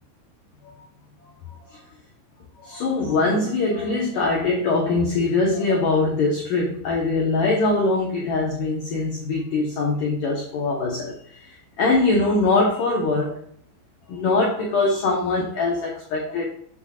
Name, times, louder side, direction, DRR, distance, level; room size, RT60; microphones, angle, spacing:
voice 1, 2.6-13.4 14.1-16.4, left 3 dB, 65° left, -2 dB, 2.2 m, -22 dB
8.3 x 7.7 x 2.5 m, 0.65 s
omnidirectional pair, 5.2 m